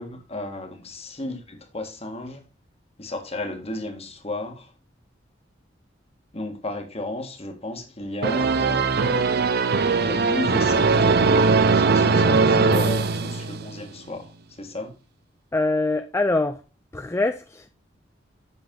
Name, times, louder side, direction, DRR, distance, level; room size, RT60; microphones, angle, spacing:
voice 1, 0.0-2.4 3.0-4.7 6.3-9.0 10.0-11.1 11.7-14.3 14.6-14.9, left 2 dB, 35° left, 1.6 m, -34 dB
sound 1, 8.2-13.9, right 4 dB, 60° right, 0.6 m, -20 dB
voice 2, 15.5-16.6 16.9-17.7, left 2 dB, 15° left, 0.4 m, -24 dB
8.1 x 6.0 x 3.7 m
head